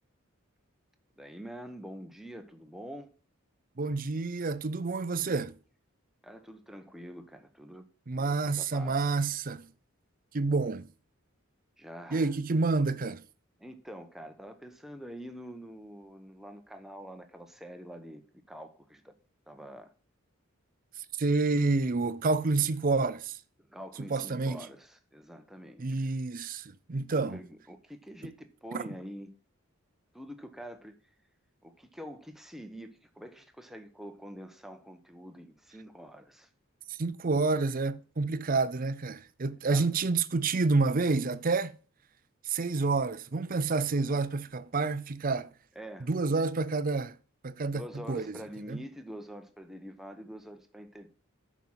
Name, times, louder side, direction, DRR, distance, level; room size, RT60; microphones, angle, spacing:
voice 1, 1.2-3.1 6.2-7.9 8.2-9.0 11.8-12.3 13.6-19.1 19.5-19.9 23.7-26.1 27.1-29.3 30.1-31.0 31.6-36.5 39.7-40.0 45.7-46.1 47.7-51.1, equal, ahead, 1.0 m, -46 dB
voice 2, 3.8-5.5 8.1-9.7 10.3-10.9 12.1-13.2 21.2-23.4 24.0-24.7 25.8-27.4 28.7-28.8 37.0-41.7 42.5-45.5 46.0-47.2 47.4-48.4 48.7-48.8, right 3 dB, 40° right, 0.6 m, -29 dB
9.2 x 6.1 x 5.6 m
head